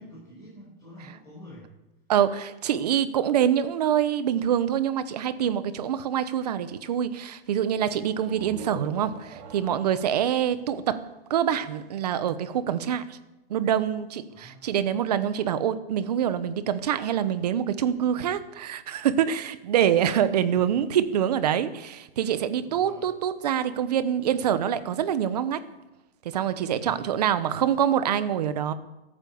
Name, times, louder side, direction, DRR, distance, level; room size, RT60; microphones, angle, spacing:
voice 1, 0.0-1.7 14.3-14.7 18.2-18.4 20.5-20.8 21.6-21.8 22.6-23.1 26.8-27.1, equal, 15° left, -7 dB, 4.8 m, -48 dB
voice 2, 2.1-11.0 11.3-13.2 13.5-25.6 26.2-28.7, right 9 dB, 40° right, 13 dB, 1.0 m, -25 dB
sound 1, 8.1-11.7, right 6 dB, 20° right, 1.2 m, -45 dB
22.5 x 9.0 x 7.0 m, 1.0 s
hypercardioid pair, 180°, 30 cm